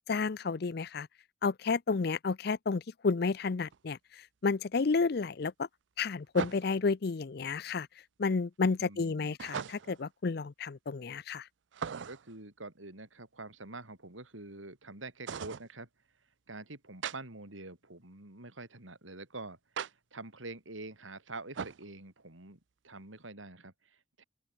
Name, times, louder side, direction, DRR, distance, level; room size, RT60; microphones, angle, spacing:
voice 1, 0.1-1.1 1.4-5.7 6.0-7.9 8.2-11.5, left 4 dB, 55° left, 0.5 m, -31 dB
sound 1, 3.7-3.8 6.3-6.9 9.4-10.1 11.7-12.4 15.3-15.7 17.0-17.2 19.8-19.9 21.5-21.9, right 6 dB, 70° right, 0.5 m, -39 dB
voice 2, 8.8-9.4 12.1-15.9 16.5-24.2, right 2 dB, 90° right, 4.6 m, -46 dB
open air
head